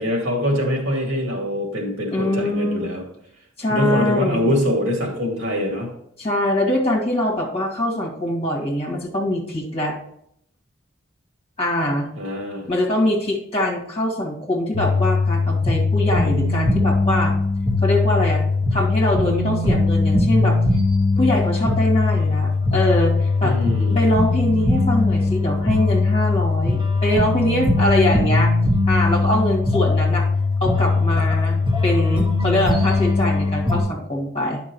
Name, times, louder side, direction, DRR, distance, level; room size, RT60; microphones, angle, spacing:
voice 1, 0.0-3.0 3.7-5.9 12.2-12.6 23.4-24.0, left 1 dB, 80° right, 0 dB, 2.2 m, -23 dB
voice 2, 2.1-2.9 3.6-4.5 6.2-9.9 11.6-12.1 12.7-17.3 17.8-18.4 18.7-20.6 21.2-23.5 23.9-28.5 28.8-30.3 30.6-34.6, left 1 dB, 30° left, -3 dB, 1.8 m, -23 dB
sound 1, 14.7-33.8, left 3 dB, 25° right, 1.8 m, -20 dB
9.9 x 5.9 x 3.1 m, 0.71 s
head